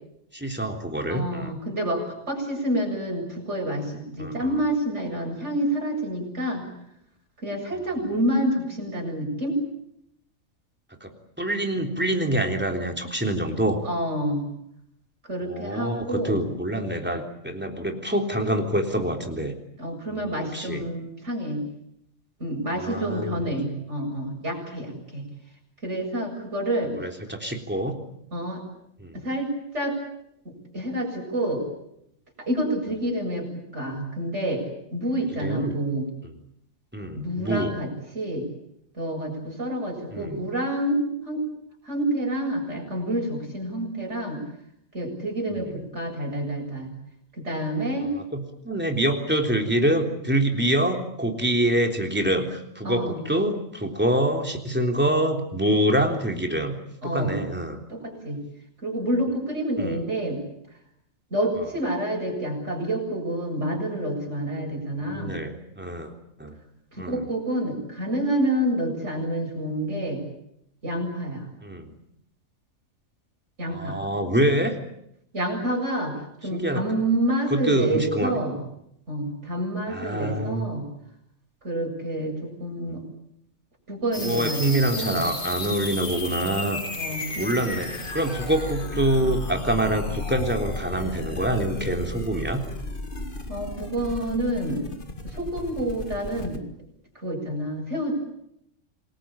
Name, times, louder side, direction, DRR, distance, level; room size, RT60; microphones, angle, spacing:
voice 1, 0.3-1.6 4.2-4.5 11.0-13.8 15.4-19.6 20.1-20.8 22.8-23.4 27.0-28.0 29.0-29.2 35.3-35.8 36.9-37.8 40.1-40.4 45.6-45.8 48.1-56.8 57.0-57.8 59.8-60.0 65.1-66.1 66.4-66.5 67.0-67.2 71.6-71.9 73.7-74.8 76.5-76.8 77.5-78.4 79.9-80.7 82.9-83.0 84.2-86.8 87.4-92.6, right 1 dB, 10° right, 3 dB, 3.5 m, -26 dB
voice 2, 1.1-6.7 7.4-9.6 13.8-14.5 15.3-16.4 19.8-21.6 22.4-25.2 25.8-27.0 28.3-28.6 29.1-30.0 30.4-31.7 32.4-36.1 37.2-37.9 38.1-38.5 38.9-41.4 41.8-44.4 44.9-46.9 47.3-48.1 52.8-53.2 57.0-57.4 57.9-58.4 58.8-60.4 61.3-65.3 66.9-70.2 70.8-71.5 73.6-74.0 75.3-78.6 79.1-80.9 81.6-83.0 83.9-85.2 87.0-87.8 93.5-94.9 95.2-96.6 97.2-98.1, right 1 dB, 60° right, 1 dB, 7.8 m, -28 dB
sound 1, 84.1-96.6, left 2 dB, 40° left, 2.2 m, -33 dB
27.5 x 20.5 x 8.9 m, 0.77 s
omnidirectional pair, 1.4 m